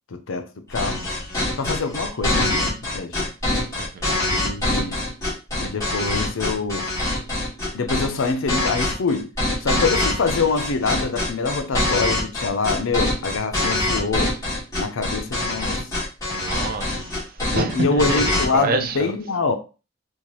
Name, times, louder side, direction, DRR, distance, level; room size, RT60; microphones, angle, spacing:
voice 1, 0.1-1.0 1.6-3.3 4.3-5.0 5.6-6.9 7.7-9.3 9.6-14.4 14.8-15.9 17.4-19.6, left 4 dB, 70° left, 0.5 m, -25 dB
sound 1, 0.7-18.5, left 1 dB, 15° left, 1.8 m, -24 dB
voice 2, 3.8-4.2 16.3-18.2 18.5-19.1, right 3 dB, 45° right, 0.5 m, -27 dB
4.4 x 2.3 x 3.0 m
head